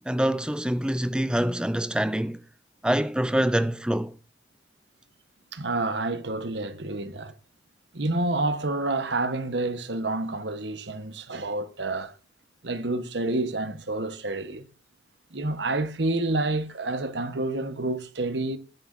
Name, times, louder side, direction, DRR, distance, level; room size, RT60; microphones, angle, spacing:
voice 1, 0.0-2.4 2.8-4.1, right 1 dB, 5° right, 0.5 m, -25 dB
voice 2, 5.5-7.3 7.9-12.1 12.6-14.6 15.3-18.6, right 2 dB, 85° right, 1.2 m, -28 dB
20.0 x 9.7 x 2.6 m
head